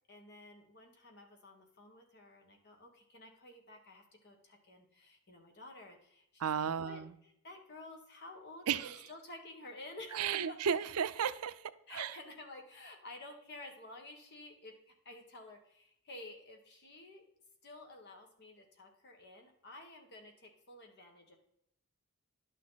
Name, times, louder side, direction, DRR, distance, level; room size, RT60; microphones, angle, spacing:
voice 1, 0.1-10.6 11.9-17.2 17.6-21.4, left 2 dB, 50° left, 3 dB, 1.7 m, -52 dB
voice 2, 6.4-7.1 8.7-9.0 10.1-11.5 11.9-12.1, right 7 dB, 80° right, 14 dB, 0.5 m, -33 dB
11.0 x 6.6 x 4.1 m, 0.74 s
head